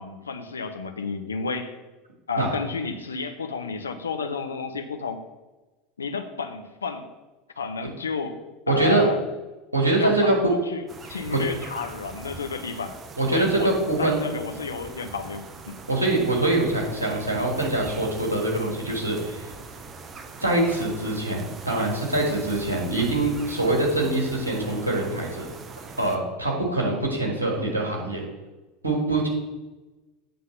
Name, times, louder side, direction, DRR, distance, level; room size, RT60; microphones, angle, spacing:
voice 1, 0.0-1.8 2.3-5.2 6.0-7.0 7.6-8.4 8.7-9.2 10.0-10.8 11.1-13.0 13.3-13.7 14.0-15.8, left 5 dB, 75° left, 7 dB, 0.7 m, -31 dB
voice 2, 8.7-9.0 9.7-10.5 13.2-14.2 15.9-19.5 20.4-25.5 26.0-28.2 28.8-29.3, right 2 dB, 80° right, -1 dB, 1.6 m, -24 dB
sound 1, 10.9-26.2, right 4 dB, 30° right, 0.8 m, -41 dB
8.6 x 3.7 x 5.8 m, 1.1 s
figure-of-eight pair, 75°, 0 cm